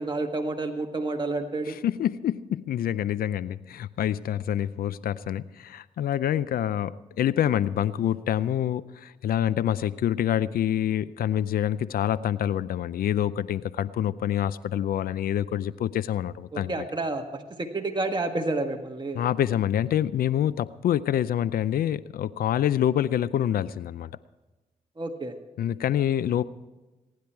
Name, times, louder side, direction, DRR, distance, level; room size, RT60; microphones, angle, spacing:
voice 1, 0.0-1.8 16.5-19.2 25.0-25.3, right 2 dB, 30° right, 3 dB, 1.7 m, -30 dB
voice 2, 1.7-16.7 19.1-24.1 25.6-26.4, left 10 dB, 80° left, 18 dB, 0.5 m, -26 dB
22.5 x 10.5 x 4.6 m, 1.1 s
cardioid pair, 50°, 15 cm